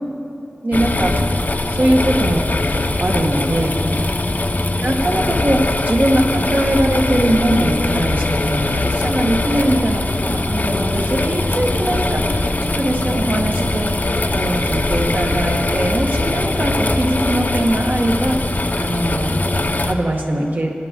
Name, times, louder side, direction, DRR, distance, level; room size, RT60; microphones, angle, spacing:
voice 1, 0.6-1.1 1.7-2.4 3.0-3.7 4.8-18.4 18.8-20.7, right 1 dB, 50° right, 1 dB, 1.5 m, -21 dB
sound 1, 0.7-19.9, left 2 dB, 50° left, 0.7 m, -21 dB
22.0 x 8.5 x 3.7 m, 2.8 s
cardioid pair, 40°, 4 cm